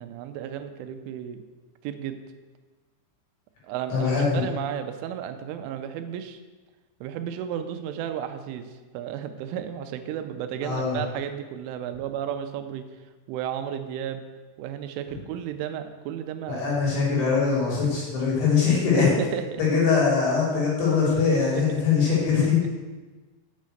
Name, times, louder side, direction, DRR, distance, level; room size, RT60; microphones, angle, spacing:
voice 1, 0.0-1.4 1.8-2.2 3.6-6.4 7.0-12.9 13.3-14.3 14.6-16.7 18.9-19.6 21.5-21.7, right 9 dB, 90° right, 8 dB, 3.2 m, -33 dB
voice 2, 3.9-4.4 10.6-11.0 16.5-19.1 19.6-22.8, left 5 dB, 60° left, -5 dB, 5.0 m, -22 dB
8.4 x 6.4 x 7.7 m, 1.3 s
omnidirectional pair, 5.6 m